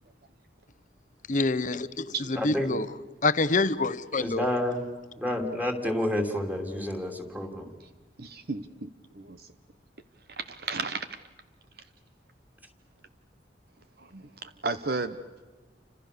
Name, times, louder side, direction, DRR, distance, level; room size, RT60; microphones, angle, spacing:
voice 1, 1.3-2.1 2.4-2.9 3.2-4.4, left 3 dB, 45° left, 0.9 m, -26 dB
voice 2, 2.4-2.8 4.2-4.8 5.2-7.7, left 1 dB, 10° right, 3.0 m, -29 dB
voice 3, 8.2-9.5 10.3-11.1 14.0-15.2, right 4 dB, 55° right, 1.0 m, -34 dB
29.5 x 26.5 x 6.8 m
head